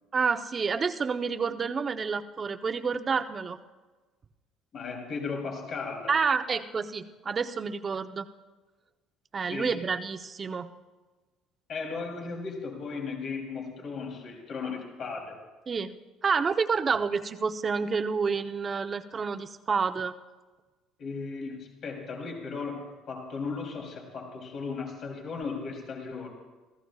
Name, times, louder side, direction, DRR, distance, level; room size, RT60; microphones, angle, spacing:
voice 1, 0.1-3.6 6.1-8.3 9.3-10.7 15.7-15.9 16.2-20.1, right 5 dB, 35° right, 9 dB, 0.8 m, -29 dB
voice 2, 4.7-6.1 9.5-9.8 11.7-15.4 21.0-26.3, left 4 dB, 55° left, 1 dB, 3.2 m, -36 dB
29.5 x 15.0 x 2.4 m, 1.2 s
supercardioid pair, 70°, 0 cm